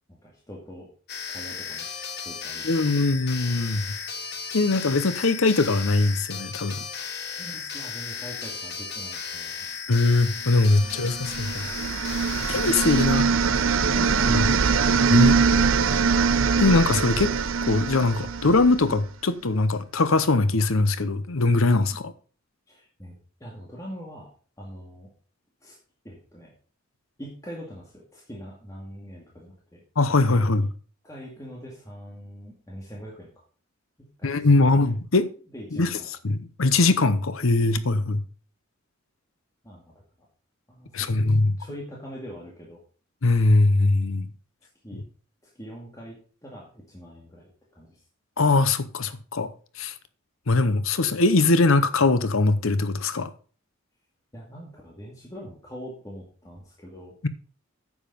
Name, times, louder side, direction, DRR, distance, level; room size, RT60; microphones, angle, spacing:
voice 1, 0.1-0.9 1.3-1.8 2.2-2.9 7.4-9.7 10.8-11.1 13.9-14.5 22.7-23.1 23.4-24.3 24.6-25.1 25.6-25.8 26.0-26.5 27.2-29.8 31.0-33.3 34.2-34.9 35.5-36.1 39.6-39.9 40.7-42.8 44.8-45.0 45.6-47.5 47.8-47.9 54.3-57.2, equal, 15° left, 2.2 m, -42 dB
sound 1, 1.1-13.1, left 6 dB, 50° left, 1.3 m, -35 dB
voice 2, 2.6-3.8 4.5-6.8 9.9-11.6 12.5-13.2 14.3-14.4 15.1-15.4 16.6-17.3 17.6-22.1 30.0-30.7 34.2-35.3 35.8-35.9 36.2-38.2 40.9-41.6 43.2-44.3 44.9-45.0 48.4-49.5 49.8-49.9 50.5-53.3, left 3 dB, 75° left, 0.8 m, -21 dB
sound 2, 11.0-19.0, right 5 dB, 70° right, 0.7 m, -22 dB
9.6 x 7.4 x 5.1 m
head